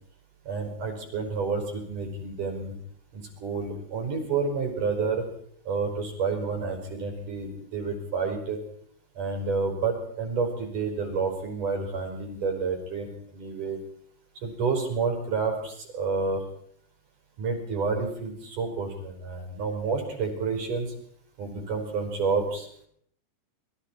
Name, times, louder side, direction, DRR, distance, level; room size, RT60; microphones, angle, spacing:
voice 1, 0.5-2.7 3.1-5.2 5.7-8.6 9.2-13.8 14.4-16.4 17.4-20.9 21.4-22.7, right 4 dB, 40° right, 3 dB, 6.2 m, -29 dB
27.5 x 23.0 x 4.6 m, 0.66 s
omnidirectional pair, 5.9 m